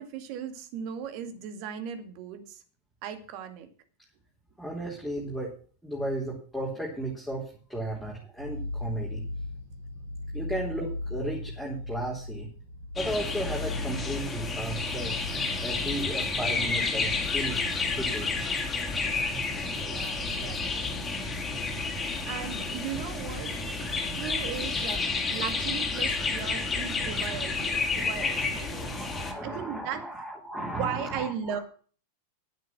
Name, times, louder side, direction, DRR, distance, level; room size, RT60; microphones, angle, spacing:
voice 1, 0.0-2.6 3.0-3.7 18.8-18.9 19.7-21.3 22.3-23.8 24.0-25.0 25.3-29.1 29.4-30.0 30.6-31.6, right 8 dB, 45° right, 9 dB, 2.2 m, -37 dB
voice 2, 4.6-5.5 5.8-9.2 10.3-12.5 12.9-15.2 15.6-17.6 17.9-18.4 27.3-27.5 27.9-31.6, right 1 dB, ahead, -4 dB, 3.4 m, -35 dB
sound 1, 8.4-24.5, left 2 dB, 65° right, 6.6 m, -40 dB
sound 2, 13.0-29.3, left 3 dB, 15° left, 3.0 m, -30 dB
11.0 x 9.2 x 6.0 m, 0.42 s
figure-of-eight pair, 90°, 0 cm